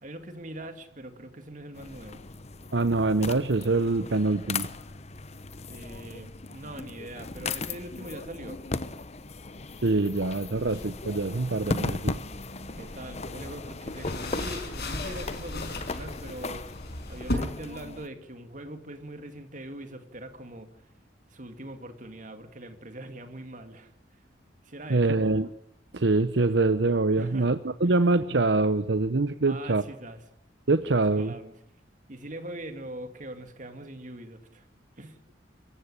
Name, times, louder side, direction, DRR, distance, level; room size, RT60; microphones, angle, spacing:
voice 1, 0.0-2.3 5.7-8.6 12.6-16.7 17.1-20.7 21.3-23.9 24.6-25.2 27.2-27.5 27.8-28.1 29.5-30.2 31.2-31.6 32.1-34.7 35.0-35.2, right 1 dB, 45° right, 2.3 m, -42 dB
sound 1, 1.7-18.1, left 3 dB, 35° left, 1.0 m, -37 dB
voice 2, 2.7-4.7 9.8-12.2 24.9-25.5 25.9-29.8 30.7-31.3, right 3 dB, 75° right, 0.9 m, -24 dB
sound 2, 10.6-17.3, left 2 dB, 60° left, 5.5 m, -38 dB
25.0 x 15.0 x 10.0 m
head